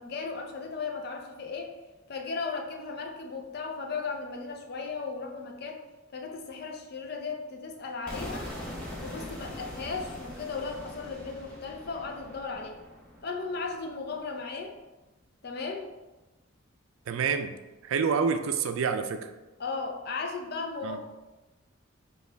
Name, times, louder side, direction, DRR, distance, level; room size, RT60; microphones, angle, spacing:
voice 1, 0.0-1.7 2.1-5.8 6.1-8.5 9.0-12.7 13.2-14.7 15.4-15.9 19.6-21.0, left 4 dB, 50° left, 3 dB, 0.5 m, -36 dB
sound 1, 8.1-13.9, left 1 dB, 5° left, 0.8 m, -42 dB
voice 2, 17.1-17.6 17.8-19.3 20.8-21.0, right 6 dB, 80° right, 8 dB, 0.4 m, -27 dB
5.0 x 2.3 x 3.3 m, 1.1 s
head